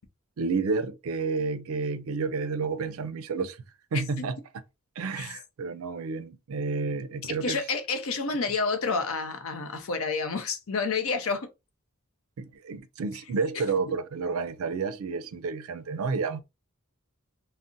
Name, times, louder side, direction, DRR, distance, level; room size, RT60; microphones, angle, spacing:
voice 1, 0.4-3.6 3.9-4.4 5.0-7.6 12.4-16.4, right 4 dB, 75° right, 0.4 m, -30 dB
voice 2, 7.2-11.5, left 4 dB, 75° left, 0.7 m, -29 dB
2.5 x 2.0 x 3.7 m
head